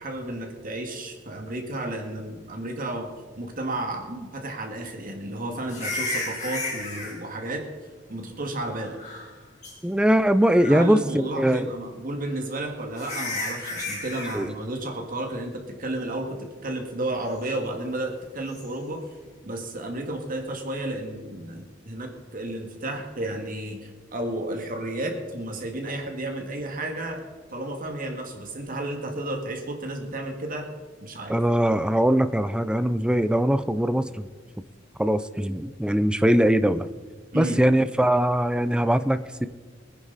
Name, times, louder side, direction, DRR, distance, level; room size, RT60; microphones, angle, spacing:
voice 1, 0.0-7.7 8.1-9.0 10.7-19.1 19.4-27.2 27.5-30.7 31.0-31.4 37.3-37.6, right 1 dB, 45° right, 3 dB, 2.0 m, -32 dB
sound 1, 5.7-7.1 8.8-9.3 9.6-9.7 10.4-10.9 12.3-12.4 13.0-14.4 18.5-18.7, left 2 dB, 40° left, 4.6 m, -33 dB
voice 2, 9.8-11.7 14.3-14.5 31.3-34.3 35.0-36.9 37.3-39.5, right 1 dB, 5° right, 12 dB, 0.5 m, -21 dB
22.0 x 10.0 x 4.1 m, 1.4 s
head